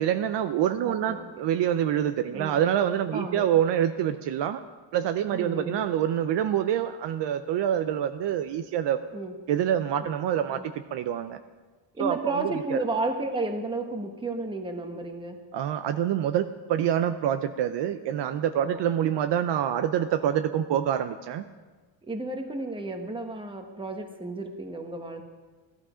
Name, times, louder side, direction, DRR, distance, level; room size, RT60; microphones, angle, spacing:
voice 1, 0.0-4.6 4.9-9.0 9.5-11.4 12.0-12.8 15.5-21.4, right 10 dB, 60° right, 9 dB, 0.7 m, -26 dB
voice 2, 0.8-1.3 2.3-2.6 3.1-3.5 5.3-5.9 9.1-9.3 10.0-10.1 10.5-10.6 11.9-15.4 18.6-18.8 22.0-25.3, right 2 dB, 10° right, 4 dB, 1.2 m, -32 dB
15.0 x 12.5 x 5.0 m, 1.3 s
cardioid pair, 150°, 48 cm